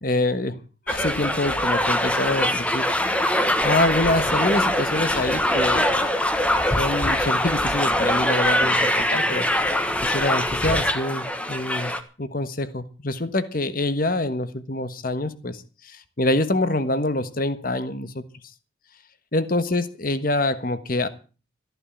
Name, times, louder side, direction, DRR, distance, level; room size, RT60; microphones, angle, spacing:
voice 1, 0.0-5.9 6.8-9.5 10.0-18.2 19.3-21.1, left 2 dB, 45° left, 12 dB, 1.3 m, -26 dB
sound 1, 0.9-12.0, left 1 dB, 5° left, 1.2 m, -23 dB
14.5 x 11.0 x 7.2 m, 0.36 s
head